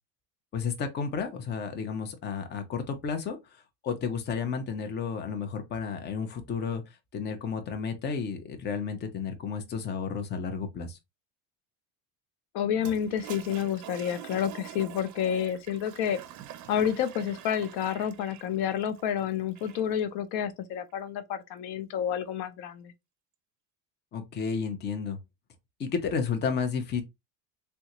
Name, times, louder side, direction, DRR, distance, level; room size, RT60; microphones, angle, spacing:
voice 1, 0.5-11.0 24.1-25.2 25.8-27.0, left 6 dB, 25° left, 0.6 m, -32 dB
voice 2, 12.5-16.2 16.7-22.9, left 9 dB, 65° left, 0.6 m, -29 dB
Toilet flush, 12.7-20.0, right 11 dB, 45° right, 0.6 m, -46 dB
3.7 x 2.2 x 2.9 m
cardioid pair, 135°, 42 cm